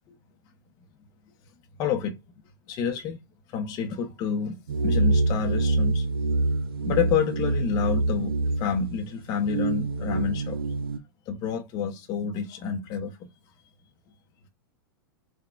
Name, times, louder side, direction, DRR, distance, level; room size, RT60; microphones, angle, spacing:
voice 1, 1.8-2.2 2.7-3.2 3.5-6.1 6.9-10.6 11.3-13.3, left 7 dB, 35° left, 0.5 m, -29 dB
sound 1, 4.7-11.0, right 2 dB, 90° right, 0.5 m, -26 dB
3.7 x 2.1 x 2.2 m
hypercardioid pair, 115°, 12 cm